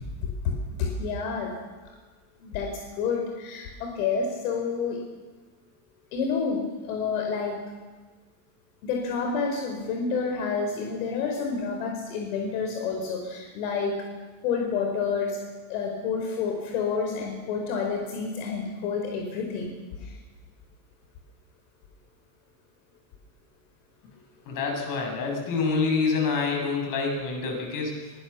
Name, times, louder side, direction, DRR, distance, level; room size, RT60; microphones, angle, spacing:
voice 1, 0.0-1.5 2.4-2.7 3.0-5.0 6.1-7.6 8.8-13.9 14.4-15.4 15.7-20.2, left 5 dB, 70° left, 2 dB, 4.8 m, -29 dB
voice 2, 24.5-28.1, left 4 dB, 45° left, 2 dB, 7.6 m, -27 dB
22.5 x 19.5 x 7.1 m, 1.3 s
supercardioid pair, 140°, 44 cm